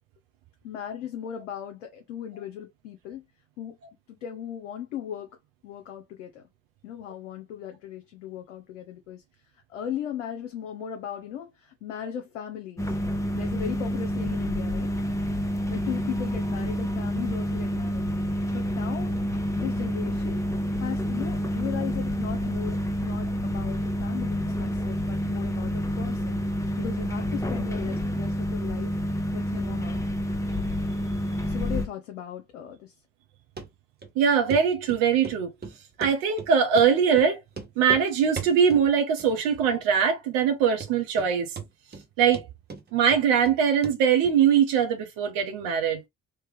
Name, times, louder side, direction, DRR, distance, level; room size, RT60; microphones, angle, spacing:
voice 1, 0.6-3.2 3.6-3.8 4.1-5.3 5.6-6.4 6.8-9.2 9.7-12.9 13.3-14.9 15.7-18.1 18.5-19.2 19.6-20.4 20.8-22.8 23.0-26.4 26.7-30.0 31.5-32.9, left 9 dB, 80° left, 0.6 m, -37 dB
sound 1, 12.8-31.9, equal, 10° left, 0.8 m, -28 dB
Run, 33.6-33.7 34.0-34.1 34.5-34.6 34.9-35.4 35.6-36.5 36.8-36.9 37.2-37.3 37.5-38.1 38.4-38.9 39.2-39.6 39.9-40.0 40.5-40.6 40.8-41.3 41.6-42.1 42.3-43.6 43.8-44.0 44.2-44.3, right 5 dB, 25° right, 1.0 m, -37 dB
voice 2, 34.2-35.5 36.0-37.4 37.8-41.5 42.2-42.4 42.9-46.0, right 7 dB, 65° right, 1.0 m, -22 dB
3.3 x 3.1 x 3.3 m
figure-of-eight pair, 40°, 37 cm